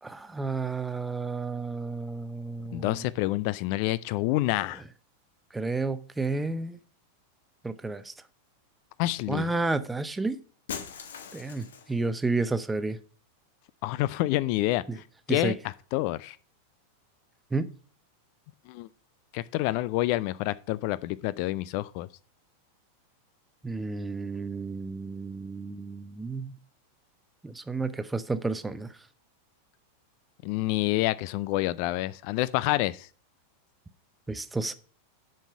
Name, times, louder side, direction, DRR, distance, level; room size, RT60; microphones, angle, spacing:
voice 1, 0.0-3.1 5.5-6.8 7.6-8.1 9.3-10.4 11.3-13.0 15.3-15.5 17.5-17.7 23.6-26.5 27.4-28.9 34.3-34.7, right 3 dB, 10° right, 0.6 m, -31 dB
voice 2, 2.7-4.8 9.0-9.5 13.8-15.6 15.9-16.4 18.7-18.9 19.3-22.1 30.4-33.1, left 17 dB, 45° left, 0.3 m, -28 dB
Shatter, 10.7-12.0, left 7 dB, 65° left, 1.1 m, -40 dB
7.3 x 5.4 x 5.7 m
figure-of-eight pair, 90°, 0 cm